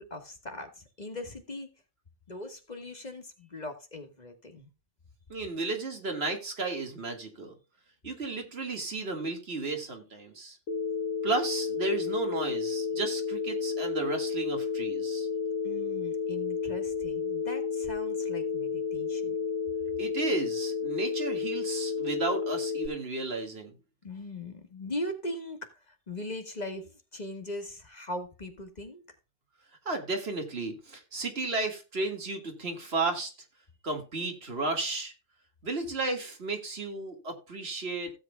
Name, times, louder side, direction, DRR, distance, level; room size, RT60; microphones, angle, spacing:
voice 1, 0.0-1.7 2.3-4.7 15.6-19.3 24.0-29.0, left 1 dB, 35° left, 6 dB, 1.5 m, -40 dB
voice 2, 5.3-7.6 8.0-10.6 11.2-15.3 20.0-23.7 29.9-33.3 33.8-35.1 35.6-38.1, right 3 dB, 55° right, 4 dB, 2.1 m, -33 dB
Telephone, 10.7-22.9, left 5 dB, 90° left, 2.4 m, -31 dB
16.5 x 7.6 x 2.2 m, 0.31 s
omnidirectional pair, 1.3 m